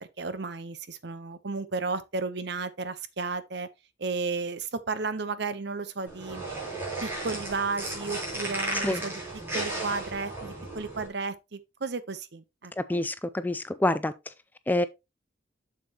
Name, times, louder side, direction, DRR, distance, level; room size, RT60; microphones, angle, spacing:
voice 1, 0.0-3.7 4.0-6.4 7.0-9.2 9.5-13.0, right 4 dB, 65° right, 0.8 m, -33 dB
sound 1, 6.1-11.1, right 2 dB, 10° right, 3.9 m, -34 dB
voice 2, 12.8-14.1 14.7-14.9, left 1 dB, 10° left, 0.4 m, -27 dB
7.4 x 6.9 x 2.9 m
head